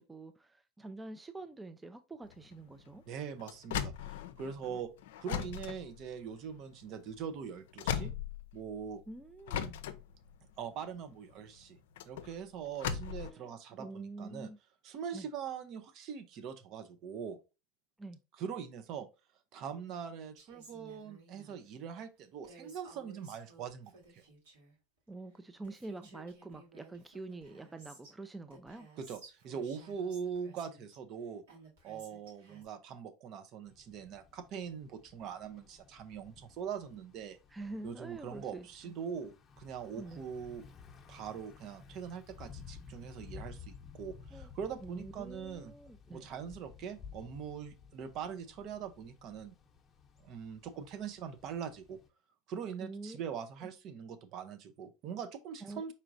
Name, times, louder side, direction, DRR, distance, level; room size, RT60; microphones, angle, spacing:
voice 1, 0.0-3.0 9.1-9.8 13.2-13.5 13.8-14.6 15.1-15.3 18.0-18.2 25.1-28.9 37.5-38.9 39.9-40.2 44.3-44.5 44.8-46.3 52.8-53.2 53.6-53.7 55.6-55.9, right 2 dB, 15° right, 0.5 m, -46 dB
sound 1, 2.2-8.9 9.5-13.3, left 8 dB, 80° left, 0.5 m, -39 dB
voice 2, 3.1-4.9 5.2-8.1 8.5-9.0 10.6-11.8 12.1-14.5 14.8-17.4 18.4-19.1 19.5-24.2 29.0-31.4 31.8-37.4 37.8-40.7 41.1-45.7 46.1-49.6 50.2-52.0 52.5-55.9, right 7 dB, 55° right, 0.7 m, -42 dB
Female speech woman speaking, 20.4-21.6 22.4-24.7 25.3-25.4 25.6-28.1 28.5-31.0 31.5-32.6, right 3 dB, 85° right, 2.6 m, -57 dB
Thunder / Bicycle, 33.7-52.1, left 6 dB, 30° left, 0.8 m, -55 dB
4.7 x 4.3 x 2.6 m
hypercardioid pair, 95°, 0 cm